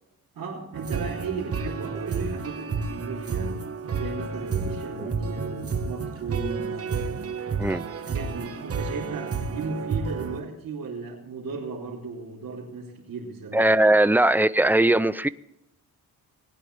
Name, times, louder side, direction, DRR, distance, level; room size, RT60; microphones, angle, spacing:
voice 1, 0.3-3.6 3.9-7.2 8.1-13.7, right 4 dB, 70° right, -6 dB, 3.4 m, -36 dB
sound 1, 0.7-10.4, right 5 dB, 40° right, 1.3 m, -31 dB
voice 2, 13.5-15.3, right 1 dB, 5° right, 14 dB, 0.4 m, -20 dB
19.5 x 10.0 x 3.4 m, 0.85 s
cardioid pair, 115°, 35 cm